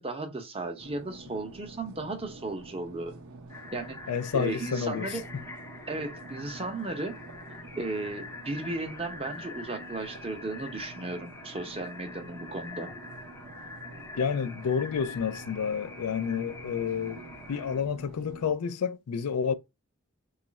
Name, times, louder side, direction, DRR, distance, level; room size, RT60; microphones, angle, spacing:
voice 1, 0.0-3.1 3.7-4.0 4.3-5.3 5.9-7.1 7.8-12.9, right 2 dB, 25° right, 0.7 m, -35 dB
sound 1, 0.8-18.5, right 2 dB, 65° right, 0.5 m, -48 dB
sound 2, 3.5-17.8, left 3 dB, 10° left, 0.5 m, -45 dB
voice 2, 4.1-5.2 14.2-17.2 17.5-19.5, left 7 dB, 85° left, 0.4 m, -30 dB
3.1 x 2.4 x 3.9 m
head